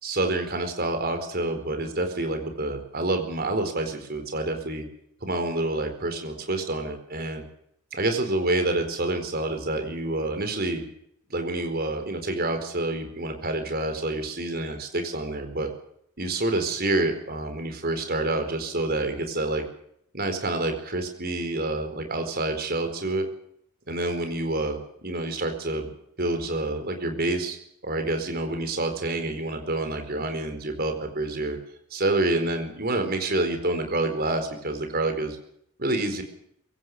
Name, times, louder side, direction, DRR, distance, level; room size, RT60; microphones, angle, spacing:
voice 1, 0.0-4.8 5.2-7.4 7.9-10.8 11.3-15.7 16.2-19.6 20.1-23.3 23.9-25.9 26.2-27.6 27.8-31.6 31.9-35.4 35.8-36.2, right 2 dB, 45° right, 6 dB, 4.4 m, -28 dB
23.5 x 17.0 x 6.8 m, 0.70 s
head